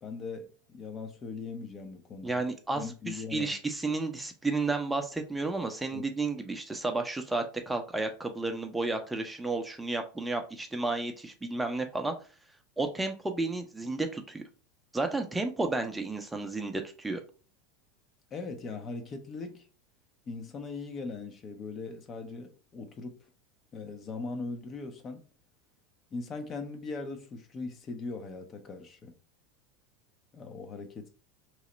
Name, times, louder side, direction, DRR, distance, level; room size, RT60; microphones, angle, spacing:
voice 1, 0.0-2.4 2.7-3.5 5.9-6.0 18.3-19.7 20.3-23.2 23.7-25.2 26.1-29.1 30.3-31.1, left 4 dB, 30° left, 0.6 m, -40 dB
voice 2, 2.2-12.1 12.8-14.4 14.9-17.2, right 3 dB, 10° right, 0.6 m, -32 dB
3.1 x 2.8 x 3.8 m
figure-of-eight pair, 80°, 0 cm